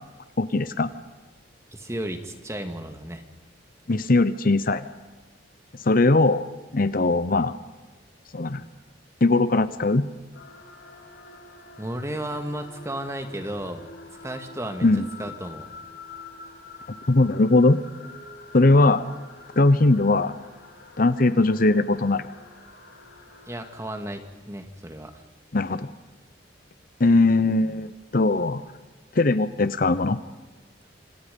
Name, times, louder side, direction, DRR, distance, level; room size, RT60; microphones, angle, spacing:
voice 1, 0.4-0.9 3.9-4.8 5.8-6.5 6.7-7.5 8.3-8.6 9.2-10.1 14.8-15.0 17.1-17.8 18.5-19.1 19.6-20.3 21.0-22.2 25.5-25.9 27.0-28.6 29.1-30.2, left 2 dB, 50° left, 13 dB, 0.9 m, -20 dB
voice 2, 1.7-3.2 11.8-13.9 14.2-15.7 23.4-25.2, right 1 dB, 15° right, 6 dB, 2.1 m, -34 dB
sound 1, 10.3-23.9, left 3 dB, 85° left, 4.4 m, -46 dB
28.0 x 26.0 x 5.4 m, 1.3 s
head